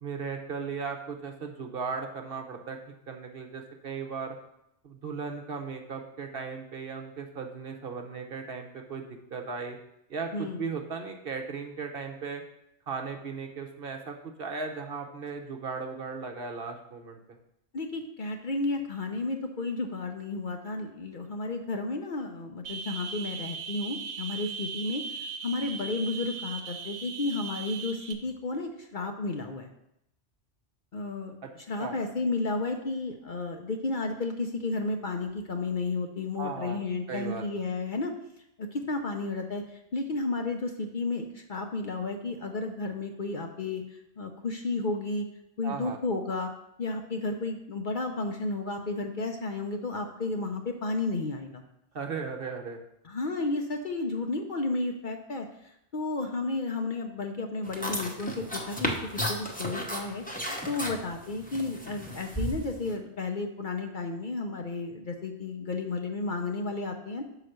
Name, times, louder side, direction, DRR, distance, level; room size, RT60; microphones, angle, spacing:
voice 1, 0.0-4.4 4.8-9.8 10.1-12.4 12.9-17.2 31.4-31.5 31.8-31.9 36.4-37.4 45.6-46.0 51.9-52.8, right 5 dB, 55° right, 4 dB, 0.9 m, -37 dB
voice 2, 10.3-10.6 17.7-25.0 25.4-29.7 30.9-38.1 38.6-45.3 45.6-46.5 46.8-51.6 53.0-67.2, left 3 dB, 50° left, 4 dB, 0.7 m, -32 dB
sound 1, 22.6-28.1, right 5 dB, 85° right, 1.1 m, -38 dB
sound 2, 57.6-63.0, equal, 10° left, 0.7 m, -34 dB
5.7 x 4.9 x 6.4 m, 0.80 s
omnidirectional pair, 1.3 m